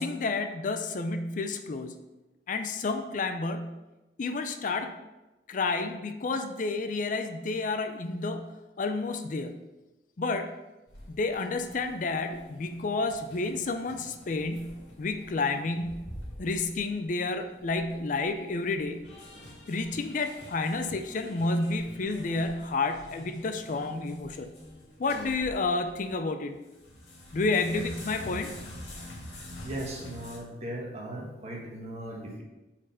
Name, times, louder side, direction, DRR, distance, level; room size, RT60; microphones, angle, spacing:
voice 1, 0.0-2.0 2.5-3.8 4.2-4.9 5.5-8.5 8.8-9.6 10.2-10.5 11.1-16.1 16.4-19.1 19.7-24.5 25.0-26.6 27.3-28.5, left 3 dB, 45° left, 7 dB, 0.4 m, -30 dB
sound 1, 10.9-26.1 26.5-30.4, left 1 dB, 85° left, 1.9 m, -47 dB
voice 2, 29.6-32.4, right 1 dB, 35° right, -1 dB, 1.3 m, -38 dB
5.1 x 4.4 x 5.5 m, 1.0 s
head